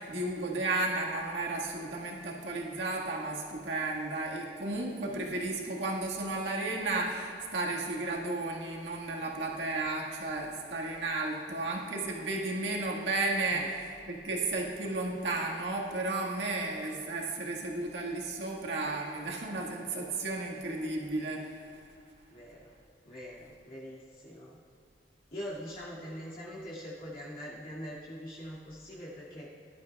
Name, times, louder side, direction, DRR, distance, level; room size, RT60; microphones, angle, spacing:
voice 1, 0.0-21.9, right 2 dB, 85° right, -2 dB, 1.7 m, -33 dB
voice 2, 22.3-22.7 23.0-24.6 25.3-29.5, equal, 55° left, -7 dB, 2.3 m, -43 dB
18.0 x 11.5 x 2.4 m, 2.6 s
head